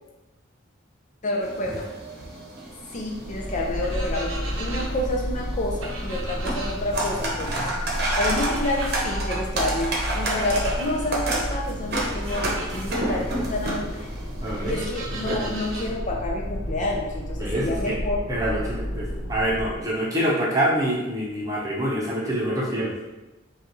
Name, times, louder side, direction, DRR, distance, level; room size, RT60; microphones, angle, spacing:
voice 1, 1.2-1.9 2.9-7.7 8.1-14.1 14.6-18.2, left 1 dB, 35° left, -1 dB, 0.4 m, -29 dB
sound 1, 1.4-15.9, right 1 dB, 50° right, 0.9 m, -31 dB
sound 2, 2.8-19.9, equal, 85° left, 1.2 m, -32 dB
sound 3, 3.8-4.9 5.8-6.7 7.9-8.9 10.0-10.9 12.0-12.8 14.7-15.9, right 2 dB, 85° right, 0.8 m, -37 dB
voice 2, 14.4-14.7 17.4-18.0 18.3-22.9, right 1 dB, 15° right, -5 dB, 0.8 m, -26 dB
5.3 x 2.4 x 3.1 m, 1.0 s
head